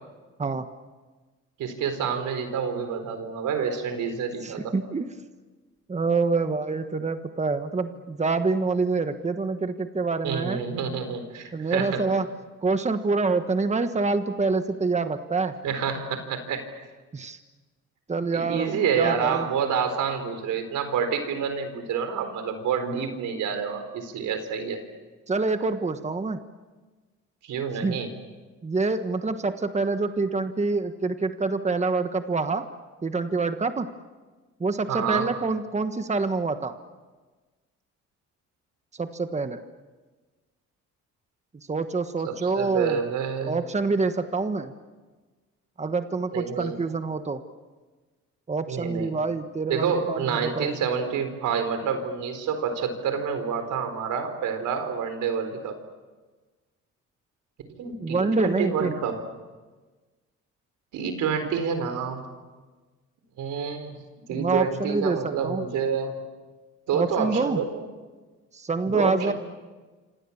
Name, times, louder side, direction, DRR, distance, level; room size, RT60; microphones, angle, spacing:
voice 1, 1.6-4.7 10.2-12.0 15.6-16.6 18.3-24.8 27.4-28.1 34.9-35.3 42.2-43.6 46.3-46.8 48.7-49.1 49.7-55.7 57.8-59.2 60.9-62.3 63.4-64.0 64.3-66.2 66.9-67.8 68.9-69.3, right 6 dB, 80° right, 8 dB, 4.2 m, -28 dB
voice 2, 4.4-5.1 5.9-10.6 11.5-12.3 12.6-15.5 17.1-17.4 18.1-19.5 25.3-26.4 27.8-28.0 28.6-32.6 33.0-33.9 34.6-36.7 38.9-39.6 41.7-43.0 43.5-44.7 45.8-47.4 48.5-50.7 58.0-58.9 64.3-65.6 66.9-67.6 68.5-69.3, right 3 dB, 20° right, 8 dB, 1.4 m, -26 dB
27.0 x 27.0 x 7.3 m, 1.3 s
cardioid pair, 90°, 30 cm